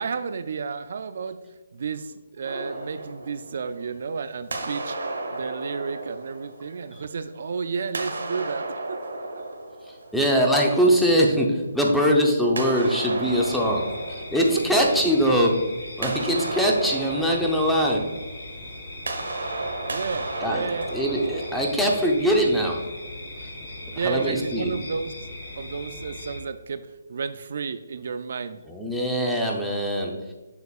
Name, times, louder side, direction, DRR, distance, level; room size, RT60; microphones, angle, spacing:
voice 1, 0.0-1.4 1.7-5.0 5.3-9.0 9.4-9.5 14.5-14.6 19.9-20.9 23.9-28.6, right 5 dB, 55° right, 11 dB, 0.4 m, -32 dB
sound 1, 2.4-4.1 4.5-7.3 7.8-10.7 12.6-15.3 15.7-22.3, right 2 dB, 80° right, 1.2 m, -34 dB
voice 2, 10.1-13.8 14.3-15.6 16.0-18.0 20.4-20.6 20.9-22.8 23.9-24.7 28.7-30.1, equal, ahead, -2 dB, 0.7 m, -22 dB
sound 2, 13.2-26.4, left 1 dB, 40° left, 2.0 m, -39 dB
6.8 x 6.6 x 2.4 m, 1.2 s
hypercardioid pair, 160°, 0 cm